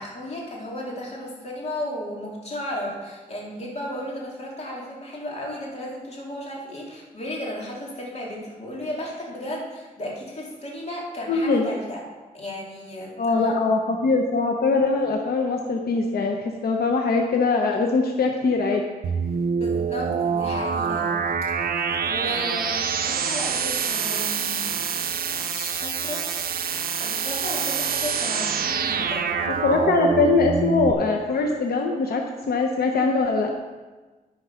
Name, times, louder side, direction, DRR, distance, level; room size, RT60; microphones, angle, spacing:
voice 1, 0.0-12.0 12.3-13.1 13.4-13.5 19.6-21.2 22.1-25.0 25.4-26.2 27.0-29.4, left 1 dB, 45° left, -3 dB, 2.6 m, -34 dB
voice 2, 11.3-11.7 13.2-18.8 29.5-33.5, left 3 dB, 85° left, 2 dB, 0.8 m, -22 dB
sound 1, 19.0-30.9, right 6 dB, 80° right, 0.6 m, -26 dB
13.0 x 4.5 x 5.7 m, 1.3 s
wide cardioid pair, 110°, 15 cm